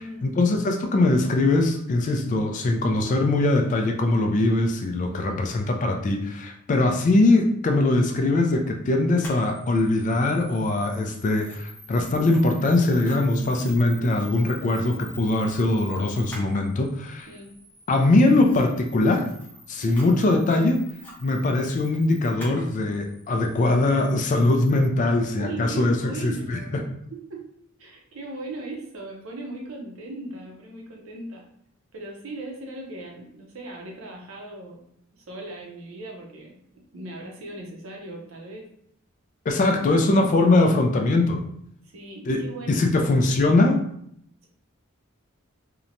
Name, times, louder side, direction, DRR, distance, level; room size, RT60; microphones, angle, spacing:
voice 1, 0.0-17.3 17.9-19.3 19.7-20.8 21.2-26.6 39.5-41.4 42.3-43.8, left 2 dB, 35° left, 4 dB, 0.3 m, -21 dB
voice 2, 5.1-5.4 13.6-14.1 17.3-17.5 19.8-20.1 25.4-26.8 27.1-27.5 27.8-31.4 31.9-34.8 35.1-38.7 39.5-40.3 41.8-43.6, right 2 dB, 70° right, 0 dB, 0.7 m, -38 dB
Camera, 9.2-24.9, equal, 10° left, 0.6 m, -46 dB
2.8 x 2.1 x 2.5 m, 0.71 s
head